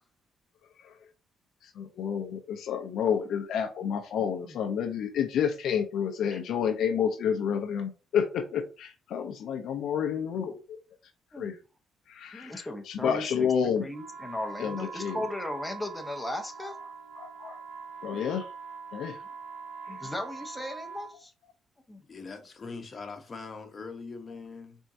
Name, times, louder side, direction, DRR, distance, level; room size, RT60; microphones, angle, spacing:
voice 1, 1.8-10.8 11.4-11.6 12.1-13.8 14.6-15.2 17.2-17.6 18.0-18.5 18.9-19.2, left 7 dB, 75° left, 0.7 m, -30 dB
voice 2, 4.2-4.5 6.3-6.4 11.3-11.5 12.3-16.7 18.1-18.2 19.9-21.3 21.9-22.0, left 1 dB, 10° left, 1.0 m, -37 dB
sound 1, 13.9-21.1, right 4 dB, 85° right, 1.2 m, -43 dB
voice 3, 22.1-24.8, left 4 dB, 40° left, 1.1 m, -41 dB
4.4 x 3.6 x 2.7 m
cardioid pair, 90°, 0 cm